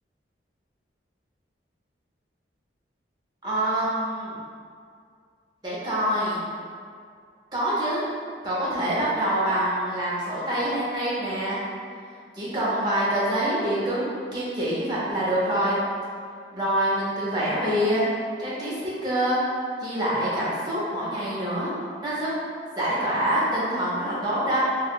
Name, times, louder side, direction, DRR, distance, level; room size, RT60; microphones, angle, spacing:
voice 1, 3.4-4.4 5.6-6.4 7.5-8.0 8.4-11.6 12.3-15.8 16.5-18.0 18.4-18.8 19.0-19.4 19.8-22.3 22.8-24.6, right 1 dB, 20° right, -8 dB, 0.6 m, -25 dB
3.5 x 2.1 x 2.3 m, 2.2 s
head